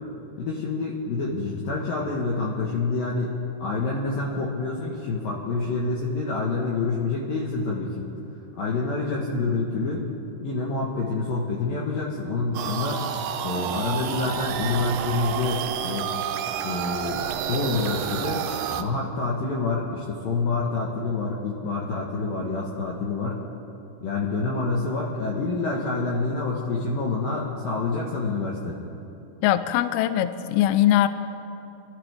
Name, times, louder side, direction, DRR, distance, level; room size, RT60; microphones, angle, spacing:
voice 1, 0.4-3.3 3.6-8.0 8.6-10.1 10.4-13.0 13.4-16.1 16.6-18.4 18.8-23.4 24.0-28.8, left 3 dB, 65° left, -4 dB, 2.5 m, -27 dB
sound 1, 12.5-18.8, right 8 dB, 80° right, 2.6 m, -29 dB
voice 2, 29.4-31.1, left 12 dB, 85° left, 11 dB, 2.2 m, -21 dB
27.0 x 13.0 x 3.4 m, 2.8 s
omnidirectional pair, 5.4 m